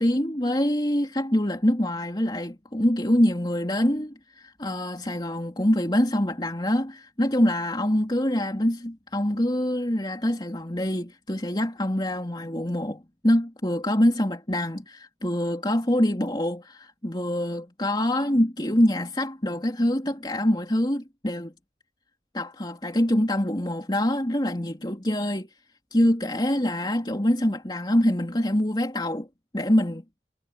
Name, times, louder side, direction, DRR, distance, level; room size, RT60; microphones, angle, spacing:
voice 1, 0.0-21.5 22.3-25.5 25.9-29.3 29.5-30.0, left 1 dB, 25° left, 3.4 m, -25 dB
head